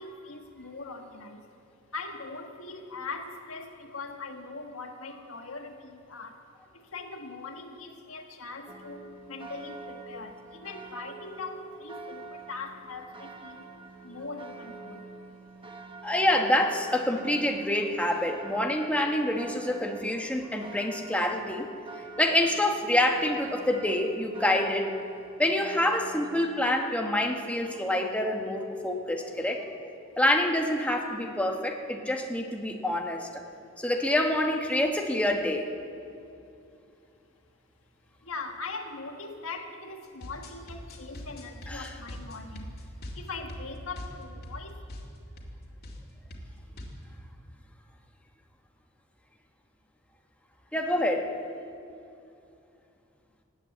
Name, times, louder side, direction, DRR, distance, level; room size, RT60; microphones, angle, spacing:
voice 1, 0.0-1.5 1.9-6.4 6.7-13.7 14.0-15.1 38.2-42.8 43.1-44.8, left 3 dB, 80° left, 4 dB, 1.7 m, -41 dB
sound 1, 8.7-26.7, right 3 dB, 25° right, 1.1 m, -46 dB
voice 2, 16.0-21.7 22.2-25.0 25.4-29.6 30.2-33.4 33.8-35.7 41.7-41.9 50.7-51.4, left 1 dB, 5° left, 2 dB, 1.1 m, -27 dB
sound 2, 40.0-44.6 44.9-45.1 45.4-45.6 45.8-46.0 46.3-47.0, equal, 50° left, 2.3 m, -42 dB
19.0 x 8.9 x 8.3 m, 2.6 s
head